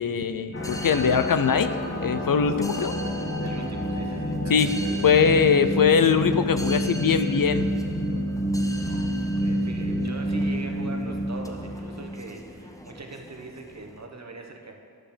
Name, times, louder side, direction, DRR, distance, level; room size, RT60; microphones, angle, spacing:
voice 1, 0.0-2.9 4.5-4.8 5.0-7.7, left 6 dB, 70° left, 10 dB, 0.5 m, -22 dB
sound 1, 0.5-12.3, equal, 35° left, 1.2 m, -28 dB
sound 2, 0.6-14.0, equal, 10° left, 0.8 m, -42 dB
voice 2, 3.4-5.0 8.8-14.8, right 3 dB, 45° right, 2 dB, 1.2 m, -41 dB
12.5 x 5.0 x 6.8 m, 2.3 s
wide cardioid pair, 70°, 36 cm